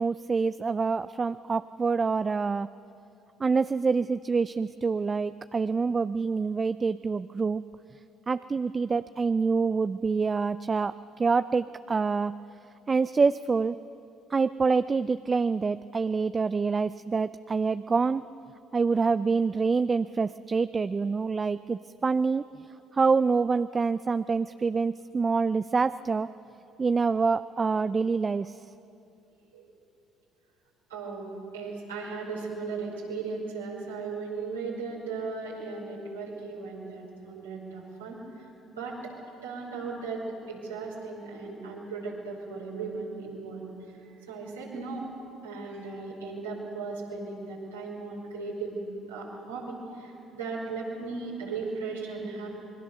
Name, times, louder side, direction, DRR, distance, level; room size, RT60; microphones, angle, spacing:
voice 1, 0.0-2.7 3.4-7.6 8.3-12.3 12.9-13.8 14.3-18.2 18.7-22.4 22.9-26.3 26.8-28.6, right 4 dB, 30° right, 13 dB, 0.5 m, -26 dB
voice 2, 30.9-45.1 45.4-52.5, right 4 dB, 90° right, -3 dB, 5.3 m, -37 dB
27.0 x 21.5 x 6.9 m, 2.8 s
hypercardioid pair, 55°, 0 cm